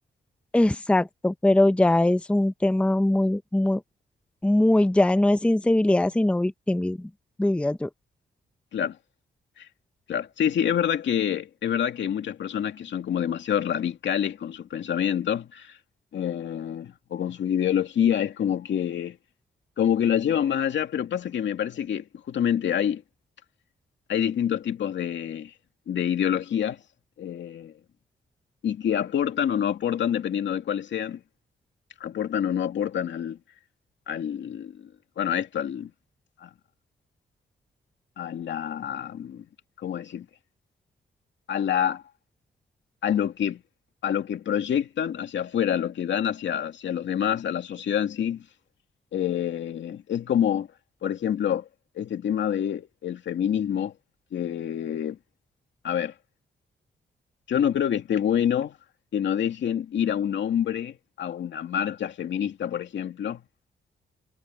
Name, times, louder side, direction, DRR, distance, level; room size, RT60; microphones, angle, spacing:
voice 1, 0.5-3.8 4.4-7.1 7.4-7.9, left 1 dB, 5° left, 0.7 m, -21 dB
voice 2, 10.1-15.8 16.1-19.2 19.8-23.0 24.1-25.5 25.9-26.8 27.2-27.7 28.6-31.2 32.0-33.4 34.1-35.9 36.4-36.5 38.2-39.5 39.8-40.3 41.5-42.0 43.0-43.6 44.0-48.5 49.1-50.7 51.0-51.7 52.0-53.9 54.3-55.2 55.8-56.1 57.5-58.8 59.1-63.4, left 9 dB, 75° left, 2.4 m, -27 dB
wide cardioid pair, 135°, 19 cm